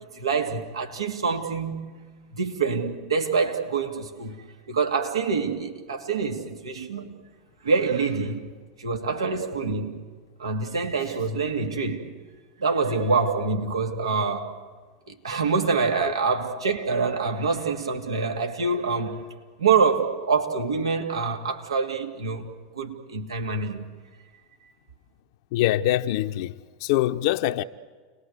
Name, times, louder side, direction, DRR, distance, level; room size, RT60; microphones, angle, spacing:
voice 1, 0.1-2.0 2.3-7.1 7.6-8.5 8.8-10.0 10.4-12.1 12.6-14.6 15.1-19.2 19.6-23.9 24.6-24.7, right 4 dB, 90° right, 2.5 m, -26 dB
voice 2, 25.5-27.6, left 14 dB, 65° left, 0.8 m, -24 dB
30.0 x 20.5 x 8.1 m
hypercardioid pair, 95°, 3 cm